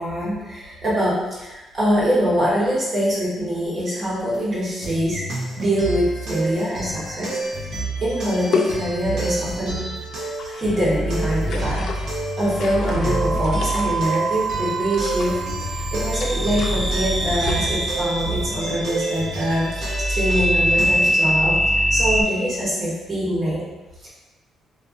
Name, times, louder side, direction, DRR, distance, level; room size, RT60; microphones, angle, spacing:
voice 1, 0.0-5.2 5.6-7.7 8.0-9.8 10.2-11.9 12.4-15.4 15.7-23.6 24.0-24.1, equal, 40° right, -7 dB, 1.1 m, -24 dB
sound 1, 4.6-21.1, right 2 dB, 60° right, 0.7 m, -30 dB
water splashing, 7.6-7.7 8.5-9.3 10.2-10.7 11.4-12.0 12.5-14.2 14.9-15.5 16.2-16.9 17.2-17.7, left 4 dB, 65° left, 0.3 m, -29 dB
sound 2, 10.6-22.2, equal, 5° right, 1.2 m, -24 dB
2.5 x 2.4 x 2.6 m, 1.1 s
cardioid pair, 95°, 0 cm